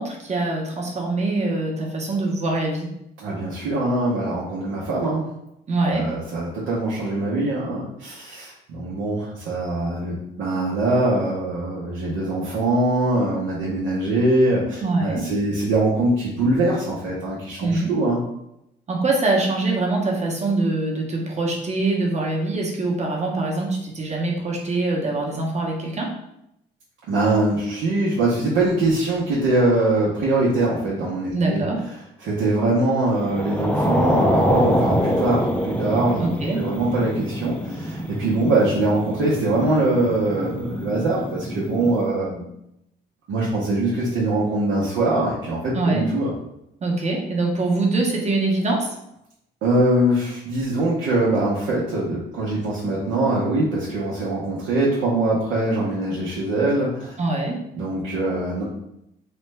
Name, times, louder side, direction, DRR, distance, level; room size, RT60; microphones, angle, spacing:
voice 1, 0.0-2.9 5.7-6.1 14.8-15.3 17.6-17.9 18.9-26.1 31.3-31.8 36.2-36.6 45.7-46.1 46.8-48.9 57.2-57.6, right 2 dB, 35° right, -1 dB, 0.8 m, -23 dB
voice 2, 3.2-5.3 5.9-18.2 27.1-31.6 32.2-42.5 43.3-46.3 49.6-57.2 57.7-58.6, right 2 dB, 90° right, -7 dB, 0.8 m, -22 dB
sound 1, 33.2-42.0, equal, 5° left, 0.4 m, -25 dB
3.2 x 2.2 x 3.2 m, 0.81 s
cardioid pair, 90°, 20 cm